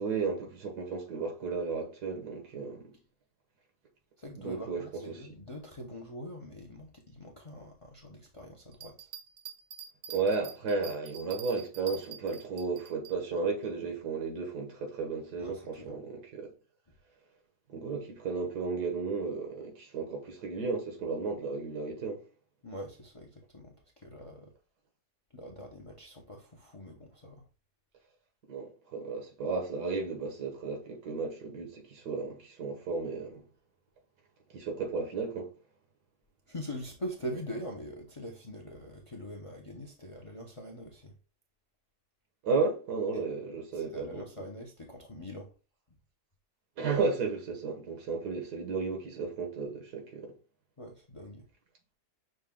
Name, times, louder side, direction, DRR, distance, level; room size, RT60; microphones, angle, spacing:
voice 1, 0.0-2.9 4.4-5.2 10.1-16.5 17.7-22.2 28.5-33.4 34.5-35.5 42.4-44.3 46.8-50.3, right 4 dB, 85° right, 1.8 m, -34 dB
voice 2, 4.2-9.1 15.4-15.9 22.6-23.7 24.0-24.5 25.3-27.4 36.5-41.1 43.7-45.5 50.8-51.4, equal, 40° left, 0.4 m, -43 dB
sound 1, 8.7-13.1, right 8 dB, 65° right, 1.0 m, -46 dB
6.4 x 2.2 x 3.6 m
omnidirectional pair, 1.7 m